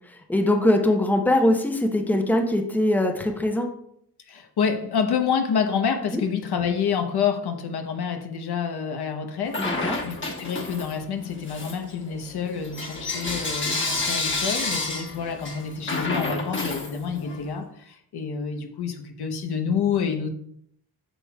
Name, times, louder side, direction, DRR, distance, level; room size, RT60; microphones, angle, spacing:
voice 1, 0.1-3.7 6.1-6.2 9.6-10.0, left 1 dB, 5° left, 4 dB, 0.8 m, -22 dB
voice 2, 4.3-20.3, left 6 dB, 80° left, 5 dB, 1.0 m, -28 dB
Bell / Coin (dropping), 9.5-11.0 11.4-17.4, left 3 dB, 30° left, 1.3 m, -30 dB
8.1 x 5.9 x 2.3 m, 0.69 s
wide cardioid pair, 110°, 38 cm